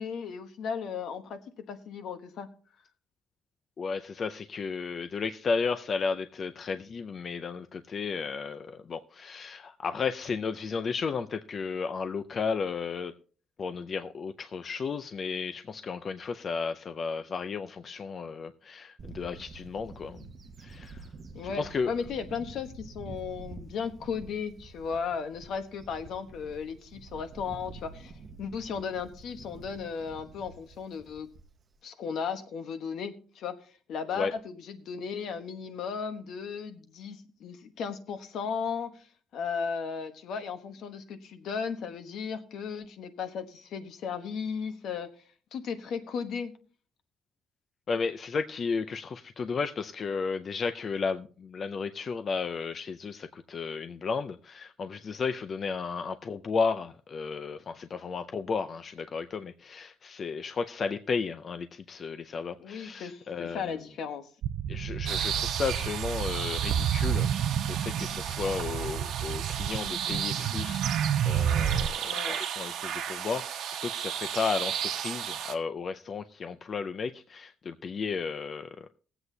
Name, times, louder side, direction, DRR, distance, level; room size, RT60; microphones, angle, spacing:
voice 1, 0.0-1.4 1.7-2.5 21.3-31.3 31.8-33.6 33.9-39.0 39.3-45.1 45.5-46.5 62.6-64.3 72.0-72.4, left 6 dB, 65° left, 1.2 m, -35 dB
voice 2, 3.8-13.1 13.6-20.3 20.6-21.1 21.5-22.0 34.1-34.3 47.9-63.8 64.7-67.3 67.7-70.9 71.2-78.9, left 5 dB, 35° left, 0.4 m, -33 dB
Bird / Wind, 19.0-31.8, right 4 dB, 30° right, 0.7 m, -48 dB
sound 1, 64.4-71.9, right 9 dB, 65° right, 0.5 m, -30 dB
sound 2, 65.1-75.5, right 9 dB, 80° right, 1.1 m, -34 dB
20.0 x 7.9 x 2.7 m
cardioid pair, 165°, 0 cm